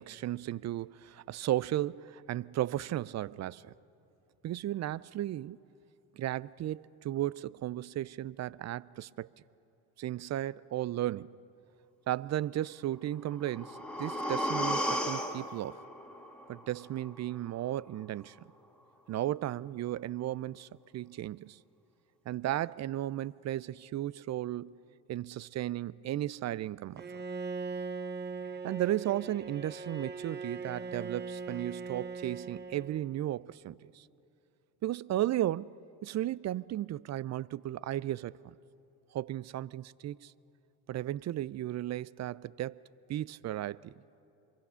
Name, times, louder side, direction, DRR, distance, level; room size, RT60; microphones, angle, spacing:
voice 1, 0.0-3.7 4.4-5.6 6.1-9.3 10.0-11.4 12.1-15.8 16.5-18.3 19.1-21.6 22.3-24.8 25.1-27.0 28.6-34.0 34.8-35.7 36.0-38.5 39.1-40.3 40.9-42.8 43.1-43.9, right 13 dB, 40° right, 0.4 m, -35 dB
sound 1, 13.2-17.2 17.6-17.7, equal, ahead, 1.9 m, -35 dB
Bowed string instrument, 27.0-33.2, right 4 dB, 20° right, 0.9 m, -40 dB
26.5 x 23.0 x 5.6 m
hypercardioid pair, 65°, 46 cm